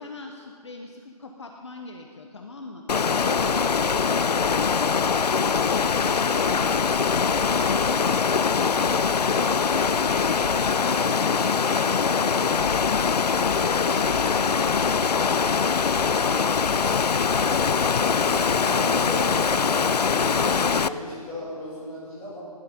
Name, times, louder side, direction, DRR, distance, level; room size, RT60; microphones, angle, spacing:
voice 1, 0.0-2.8 3.1-4.7 5.6-8.9 9.2-14.8, left 3 dB, 45° left, 3 dB, 1.1 m, -40 dB
Water, 2.9-20.9, left 5 dB, 85° left, 0.6 m, -22 dB
voice 2, 17.9-22.4, left 1 dB, 10° left, -7 dB, 2.7 m, -36 dB
18.5 x 12.0 x 5.3 m, 2.1 s
hypercardioid pair, 170°, 20 cm